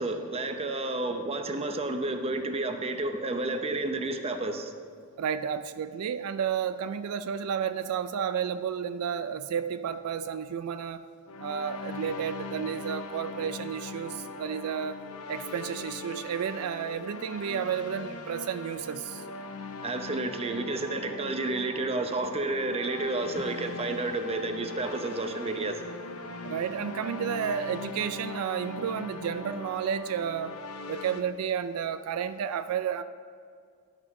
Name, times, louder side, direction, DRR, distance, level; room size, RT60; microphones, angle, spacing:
voice 1, 0.0-4.7 19.8-25.8, right 2 dB, 30° right, 6 dB, 0.7 m, -31 dB
voice 2, 5.2-11.0 11.4-15.0 15.3-19.2 26.4-30.6 30.9-33.0, right 8 dB, 80° right, 12 dB, 0.3 m, -32 dB
sound 1, 11.3-31.2, left 3 dB, 80° left, 0.7 m, -40 dB
11.0 x 6.0 x 5.3 m, 2.2 s
head